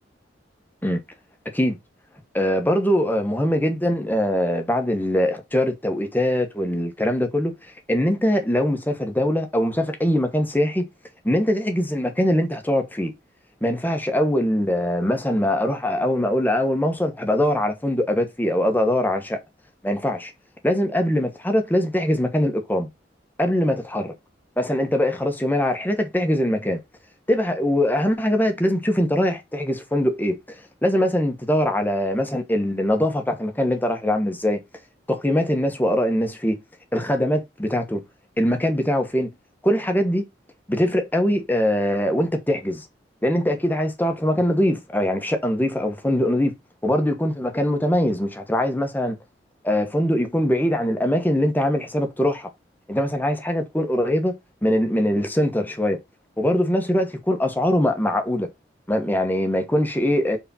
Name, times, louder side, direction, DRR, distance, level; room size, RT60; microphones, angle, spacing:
voice 1, 2.3-7.5 7.9-10.9 11.2-13.1 13.6-19.4 19.8-20.3 20.6-22.9 23.4-24.1 24.6-26.8 27.3-30.6 30.8-34.6 35.1-36.6 36.9-38.0 38.4-39.3 39.6-40.2 40.7-42.8 43.2-46.5 46.8-49.2 49.6-52.5 52.9-54.3 54.6-56.0 56.4-58.5 58.9-60.4, left 1 dB, 10° left, 1.2 m, -22 dB
4.9 x 4.1 x 5.6 m
head